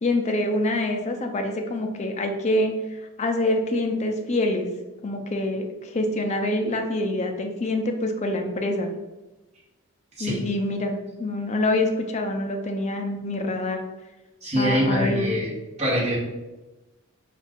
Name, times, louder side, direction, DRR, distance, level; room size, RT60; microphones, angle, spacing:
voice 1, 0.0-4.7 5.0-8.9 10.2-13.8 14.5-15.3, left 1 dB, 30° left, 4 dB, 0.4 m, -26 dB
voice 2, 14.4-15.5 15.8-16.2, equal, 30° right, -5 dB, 1.2 m, -23 dB
4.3 x 2.4 x 3.5 m, 1.1 s
head